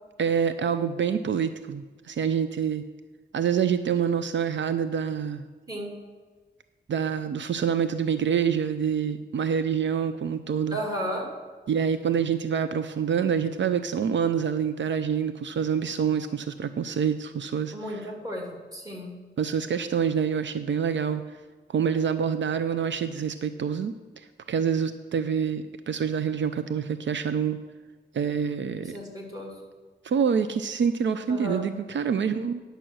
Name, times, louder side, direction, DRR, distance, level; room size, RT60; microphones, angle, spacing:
voice 1, 0.2-2.8 3.3-5.5 6.9-10.8 11.7-17.7 19.4-21.4 21.7-27.6 28.1-29.0 30.0-32.6, right 7 dB, 75° right, 10 dB, 0.5 m, -26 dB
voice 2, 5.7-6.0 10.7-11.2 17.7-19.1 28.8-29.6 31.3-31.6, equal, 20° right, -1 dB, 2.5 m, -34 dB
10.0 x 6.8 x 6.2 m, 1.4 s
wide cardioid pair, 155°, 19 cm